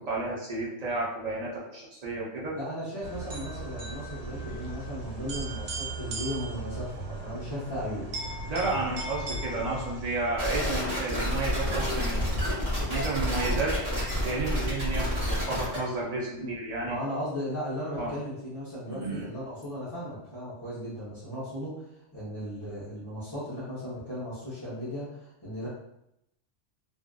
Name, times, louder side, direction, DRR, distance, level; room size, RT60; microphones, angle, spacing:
voice 1, 0.0-2.6 8.5-13.7 14.2-17.0 18.0-18.1 19.0-19.2, right 2 dB, 50° right, -5 dB, 0.5 m, -32 dB
voice 2, 2.6-8.1 16.4-16.5 16.8-21.8 22.1-25.7, equal, 25° left, -12 dB, 0.6 m, -36 dB
sound 1, 3.0-10.5, right 2 dB, 90° right, 1.0 m, -37 dB
sound 2, 10.4-15.8, equal, 35° right, 0.8 m, -29 dB
2.5 x 2.4 x 2.2 m, 0.81 s
omnidirectional pair, 1.3 m